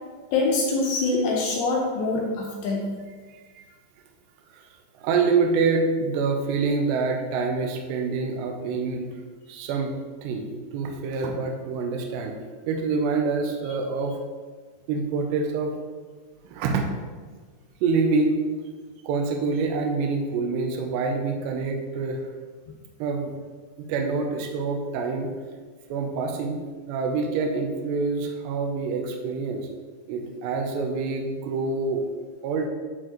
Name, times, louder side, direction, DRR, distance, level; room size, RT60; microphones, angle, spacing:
voice 1, 0.3-2.9, left 3 dB, 80° left, -1 dB, 2.6 m, -24 dB
voice 2, 3.3-3.7 4.5-4.7 5.0-9.1 9.5-9.9 10.2-12.3 12.7-14.2 14.9-15.8 16.4-16.9 17.8-18.3 19.0-22.3 23.0-23.3 23.9-25.3 25.9-26.6 26.9-29.7 30.1-32.0 32.4-32.7, right 4 dB, 85° right, 2 dB, 2.4 m, -26 dB
10.5 x 4.6 x 3.0 m, 1.5 s
omnidirectional pair, 5.8 m